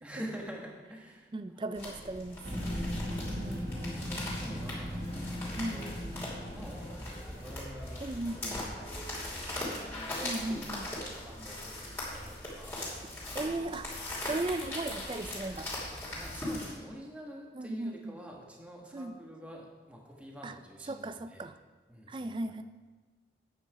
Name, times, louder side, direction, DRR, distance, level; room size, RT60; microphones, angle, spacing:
voice 1, 0.0-2.0 3.2-6.0 6.5-10.4 10.6-13.4 16.1-21.5 21.9-22.6, equal, 5° right, -1 dB, 1.3 m, -47 dB
voice 2, 1.3-2.4 3.3-3.7 5.6-5.8 8.0-8.6 10.2-10.9 13.3-13.9 14.2-15.7 17.6-18.1 18.9-19.2 20.4-20.5 20.9-21.6 22.1-22.6, right 2 dB, 25° right, 11 dB, 0.3 m, -36 dB
sound 1, 1.7-16.7, left 1 dB, 15° left, 3.0 m, -40 dB
sound 2, 2.4-7.6, equal, 85° right, 3.5 m, -38 dB
9.1 x 8.3 x 4.7 m, 1.3 s
head